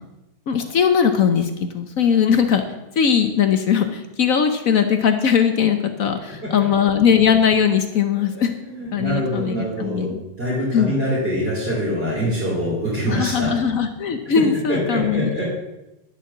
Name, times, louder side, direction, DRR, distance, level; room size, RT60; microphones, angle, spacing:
voice 1, 0.5-2.6 3.0-8.5 8.9-10.2 10.7-10.9 13.1-15.3, left 7 dB, 60° left, 7 dB, 1.2 m, -19 dB
voice 2, 8.3-10.1 10.4-13.5 14.3-14.4 14.7-15.5, equal, 35° right, -9 dB, 3.7 m, -24 dB
11.0 x 6.8 x 7.3 m, 0.96 s
omnidirectional pair, 1.7 m